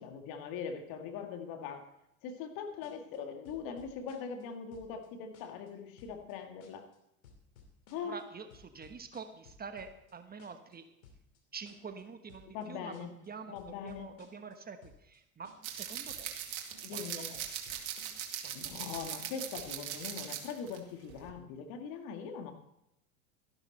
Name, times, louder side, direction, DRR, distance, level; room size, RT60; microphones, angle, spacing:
voice 1, 0.0-1.8 2.2-6.9 7.9-8.2 12.5-13.1 13.5-14.2 16.8-17.3 18.5-22.5, left 6 dB, 55° left, 4 dB, 2.1 m, -41 dB
sound 1, 2.8-3.2 3.4-4.4 4.7-5.1 5.3-5.7 6.0-6.3 6.6-7.0 7.2-8.2 8.5-10.1 10.4-10.7 11.0-11.4 11.7-12.0 12.3-12.6 12.9-13.3 13.6-14.5 14.8-15.2 15.4-15.8 16.1-16.4 16.7-17.1 17.3-18.3 18.6-19.8, left 4 dB, 75° left, 2.8 m, -58 dB
voice 2, 8.0-10.8 11.5-12.9 13.2-16.4 16.9-17.8 18.4-18.9, right 5 dB, 20° right, 8 dB, 1.2 m, -47 dB
sound 2, 15.6-20.8 21.1-21.3, right 10 dB, 55° right, 2.4 m, -40 dB
13.0 x 12.0 x 4.4 m, 0.86 s
hypercardioid pair, 80°, 41 cm